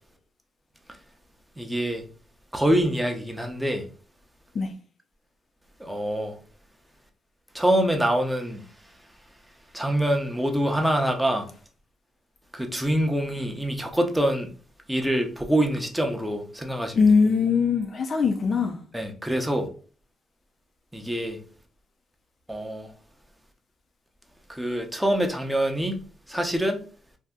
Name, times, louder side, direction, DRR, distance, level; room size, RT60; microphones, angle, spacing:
voice 1, 1.6-2.0 2.5-3.8 5.8-6.3 7.5-8.6 9.7-11.5 12.5-14.5 14.9-17.0 18.9-19.7 20.9-21.4 22.5-22.9 24.5-26.0 26.3-26.8, right 1 dB, 5° right, 0.6 m, -25 dB
voice 2, 17.0-18.8, left 5 dB, 45° left, 0.4 m, -21 dB
2.6 x 2.1 x 3.5 m
cardioid pair, 90°, 0 cm